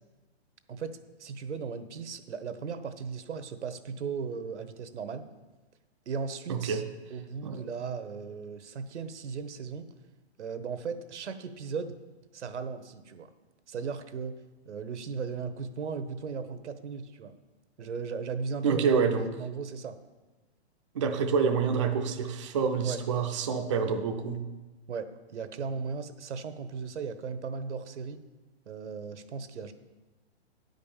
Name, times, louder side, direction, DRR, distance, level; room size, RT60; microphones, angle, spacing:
voice 1, 0.7-5.2 6.1-6.8 7.1-9.9 10.4-12.0 12.3-13.3 13.7-14.3 14.6-17.3 17.8-20.0 22.8-23.0 24.9-28.2 28.7-29.7, right 5 dB, 90° right, 10 dB, 1.0 m, -37 dB
voice 2, 6.5-6.9 7.4-7.6 18.6-19.3 20.9-24.4, right 6 dB, 30° right, 3 dB, 0.5 m, -27 dB
9.4 x 5.3 x 7.2 m, 1.2 s
hypercardioid pair, 165°, 34 cm